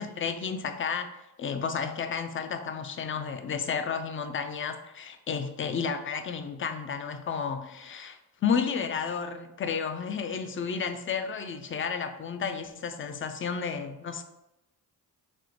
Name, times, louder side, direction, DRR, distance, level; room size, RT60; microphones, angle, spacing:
voice 1, 0.0-14.2, left 6 dB, 30° left, 8 dB, 0.4 m, -32 dB
4.3 x 2.1 x 2.8 m, 0.93 s
supercardioid pair, 50°, 42 cm